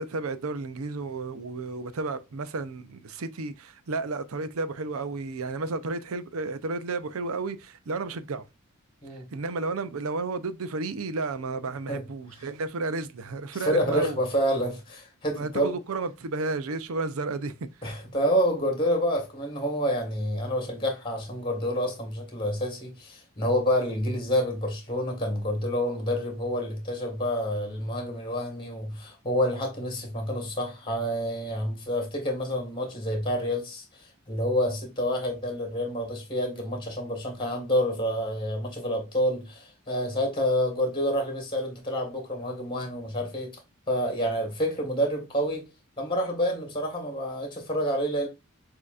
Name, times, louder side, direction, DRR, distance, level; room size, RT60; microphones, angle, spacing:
voice 1, 0.0-8.5 9.3-14.2 15.4-17.7, right 3 dB, 85° right, 0.6 m, -32 dB
voice 2, 13.6-15.7 17.8-43.6 43.9-45.7 46.0-48.3, equal, 20° left, 1.5 m, -28 dB
6.4 x 2.8 x 2.4 m
head